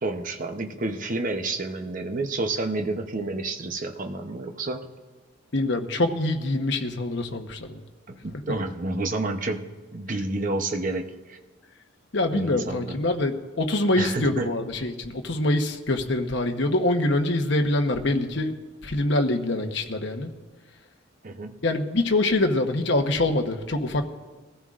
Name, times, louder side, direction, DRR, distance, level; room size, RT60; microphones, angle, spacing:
voice 1, 0.0-4.9 8.1-11.4 12.3-13.0 14.0-14.6 21.2-21.6, right 2 dB, 45° right, 5 dB, 0.8 m, -30 dB
voice 2, 5.5-7.8 12.1-18.6 18.8-20.3 21.6-24.1, left 2 dB, 60° left, 5 dB, 1.1 m, -24 dB
22.0 x 14.5 x 2.5 m, 1.3 s
head